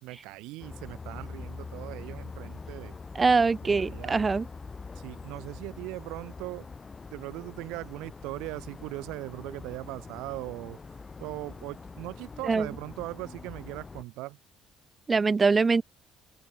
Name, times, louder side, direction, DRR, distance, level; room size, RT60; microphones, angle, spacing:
voice 1, 0.0-3.0 3.6-4.2 5.0-6.7 7.1-10.8 11.2-14.4, right 21 dB, 80° right, 0.9 m, -39 dB
sound 1, 0.6-14.0, left 4 dB, 30° left, 7.8 m, -44 dB
voice 2, 3.1-4.5 12.5-12.7 15.1-15.8, right 4 dB, 30° right, 0.6 m, -23 dB
open air
supercardioid pair, 80°, 0 cm